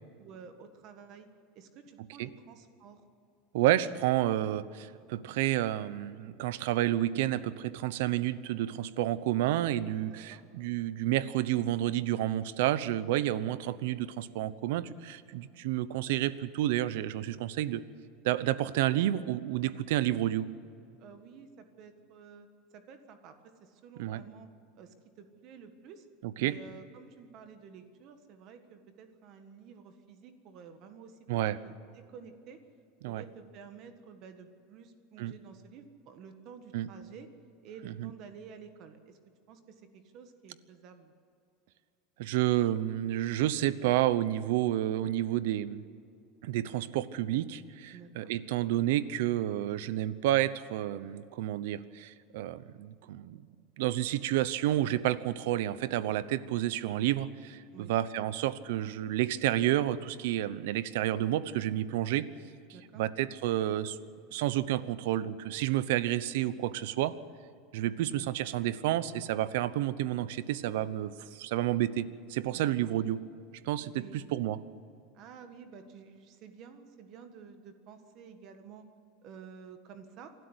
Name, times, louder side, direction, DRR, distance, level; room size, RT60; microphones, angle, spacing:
voice 1, 0.2-1.3 1.5-3.0 10.0-10.4 21.0-22.5 22.7-24.5 24.7-26.1 26.4-31.2 31.6-32.6 33.1-37.3 37.6-39.2 39.5-41.1 47.9-48.3 57.7-57.9 62.7-63.0 72.5-73.0 73.9-74.2 75.1-78.9 79.2-80.3, right 6 dB, 40° right, 8 dB, 1.5 m, -51 dB
voice 2, 3.5-17.8 18.2-20.5 24.0-24.2 26.2-26.6 31.3-31.6 33.0-33.2 35.2-35.4 36.7-36.9 37.9-38.1 42.2-45.8 46.4-53.4 53.8-62.3 62.9-64.0 64.3-67.1 67.7-73.2 73.6-74.6, right 13 dB, 70° right, 16 dB, 0.8 m, -30 dB
27.5 x 12.5 x 8.1 m, 2.5 s
supercardioid pair, 170°, 0 cm